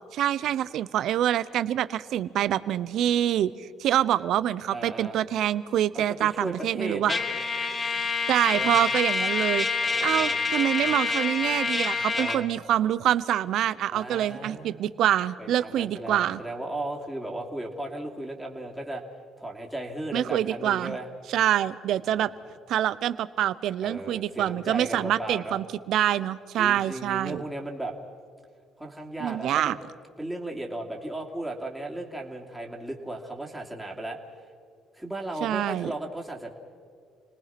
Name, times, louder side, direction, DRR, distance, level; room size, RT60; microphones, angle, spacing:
voice 1, 0.1-7.1 8.3-9.7 10.0-16.4 20.1-21.0 21.3-22.3 22.7-27.4 29.2-29.8 35.4-35.9, right 11 dB, 75° right, 16 dB, 0.7 m, -26 dB
voice 2, 4.7-5.2 5.9-7.2 8.5-8.8 9.8-10.4 12.1-12.5 13.9-14.9 15.4-19.0 19.4-21.1 22.1-22.3 23.8-25.6 26.6-27.9 28.8-29.8 30.2-34.2 34.9-36.5, right 1 dB, 5° right, -2 dB, 2.9 m, -36 dB
Trumpet, 7.1-12.4, left 4 dB, 30° left, 1.5 m, -27 dB
28.5 x 19.0 x 6.0 m, 2.2 s
cardioid pair, 90°, 0 cm